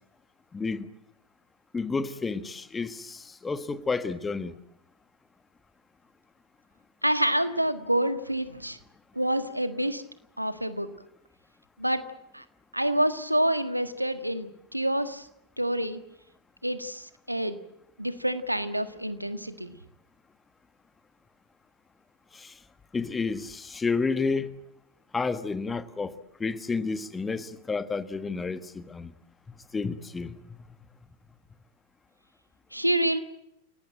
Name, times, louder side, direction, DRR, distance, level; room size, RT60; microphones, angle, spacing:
voice 1, 0.5-0.9 1.7-4.6 22.3-22.5 22.9-24.5 25.1-26.1 26.4-29.1 29.7-30.4, left 4 dB, 15° left, 1.5 m, -30 dB
voice 2, 7.0-8.8 9.1-10.0 10.4-10.9 11.8-12.0 12.3-12.4 12.7-15.3 15.6-16.0 16.6-17.6 18.0-19.8 32.7-33.2, right 1 dB, 90° right, 1.7 m, -27 dB
29.0 x 18.0 x 9.0 m
figure-of-eight pair, 90°, 0 cm